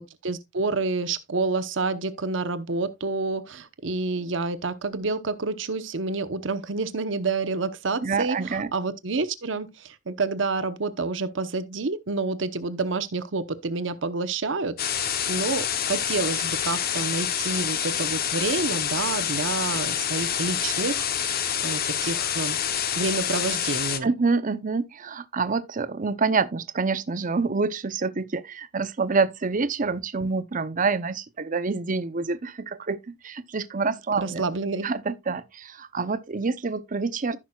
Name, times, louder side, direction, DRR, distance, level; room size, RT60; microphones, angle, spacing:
voice 1, 0.0-22.6 22.9-24.1 34.2-34.9, right 3 dB, 75° right, 0.9 m, -29 dB
voice 2, 8.0-8.7 24.0-34.4 34.8-37.4, right 4 dB, 45° right, 0.7 m, -27 dB
sound 1, 14.8-24.0, left 9 dB, 50° left, 0.9 m, -27 dB
15.0 x 6.1 x 2.3 m
head